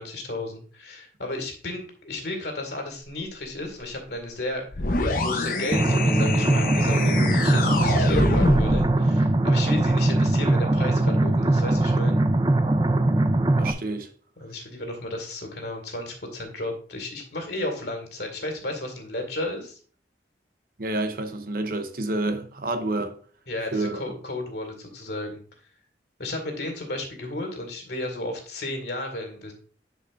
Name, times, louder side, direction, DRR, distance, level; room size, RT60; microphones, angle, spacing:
voice 1, 0.0-4.8 5.2-12.2 14.4-19.8 23.5-25.4 26.2-29.5, left 2 dB, 70° left, 2.2 m, -33 dB
sound 1, 4.7-8.9, left 2 dB, 50° left, 0.9 m, -26 dB
sound 2, 5.7-13.7, right 2 dB, 25° right, 0.5 m, -21 dB
voice 2, 13.6-14.1 20.8-23.2 23.7-24.0, right 2 dB, 55° right, 0.8 m, -28 dB
10.5 x 5.1 x 2.6 m
head